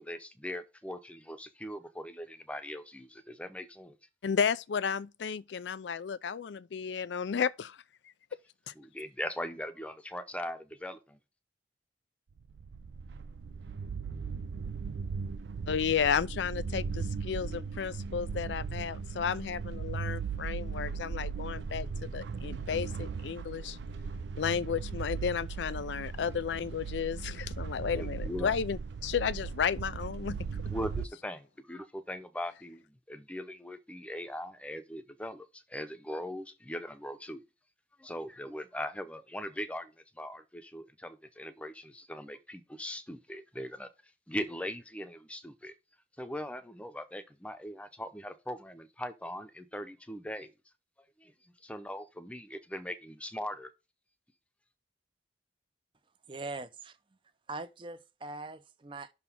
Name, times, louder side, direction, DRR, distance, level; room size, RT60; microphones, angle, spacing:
voice 1, 0.0-4.0 8.8-11.2 27.9-28.5 30.7-37.4 38.0-45.7 46.2-50.5 51.0-53.7, equal, 5° left, 0.7 m, -40 dB
voice 2, 4.2-7.8 8.7-8.8 15.7-23.8 24.4-30.4, left 7 dB, 90° left, 0.4 m, -33 dB
sound 1, 12.4-31.1, right 5 dB, 85° right, 0.4 m, -38 dB
voice 3, 56.3-57.0 57.5-59.1, right 3 dB, 30° right, 0.5 m, -41 dB
6.0 x 3.9 x 5.8 m
head